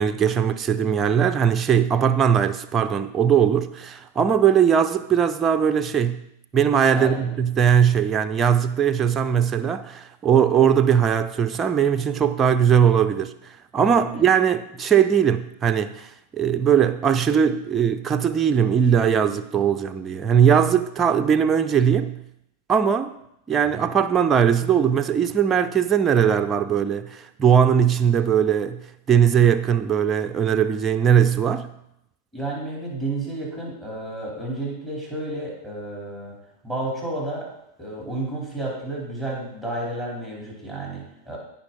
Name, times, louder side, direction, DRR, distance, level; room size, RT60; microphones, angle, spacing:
voice 1, 0.0-6.2 6.5-13.3 13.7-22.2 22.7-23.2 23.5-31.7, right 8 dB, 20° right, 0.6 m, -20 dB
voice 2, 6.9-7.4 14.0-14.2 23.7-23.8 32.3-36.4 36.6-37.5 37.8-41.4, right 2 dB, 5° left, 4.4 m, -31 dB
16.0 x 5.8 x 4.2 m
figure-of-eight pair, 90°, 0 cm